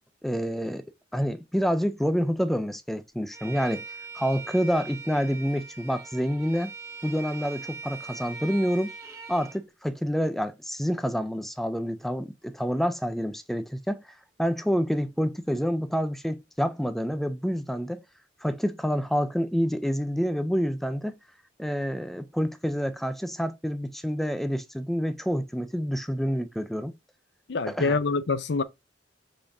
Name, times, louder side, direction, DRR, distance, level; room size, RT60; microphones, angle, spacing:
voice 1, 0.2-0.9 1.1-3.8 4.1-6.7 7.0-8.9 9.3-14.1 14.4-18.0 18.4-21.2 21.6-26.9 27.7-28.0, equal, ahead, 0.4 m, -28 dB
Bowed string instrument, 3.3-9.6, right 4 dB, 15° right, 1.2 m, -41 dB
voice 2, 27.5-28.6, left 4 dB, 70° left, 0.5 m, -25 dB
5.2 x 3.5 x 2.6 m
head